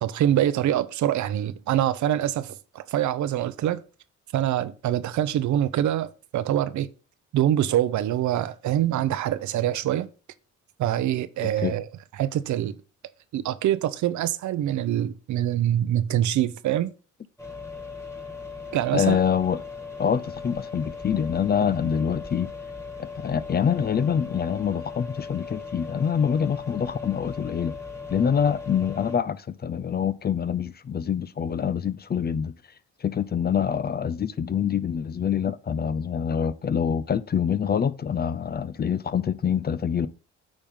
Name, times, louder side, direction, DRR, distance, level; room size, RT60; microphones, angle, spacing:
voice 1, 0.0-3.8 4.3-6.9 7.3-10.1 10.8-11.9 12.2-12.8 13.3-16.9 18.7-19.2, right 11 dB, 70° right, 0.7 m, -25 dB
voice 2, 11.4-11.7 18.9-19.6 20.0-22.5 23.0-27.7 28.1-32.5 33.0-40.1, left 7 dB, 35° left, 0.5 m, -25 dB
sound 1, 17.4-29.2, left 4 dB, 10° left, 1.8 m, -38 dB
8.9 x 3.6 x 5.5 m
cardioid pair, 90°, 30 cm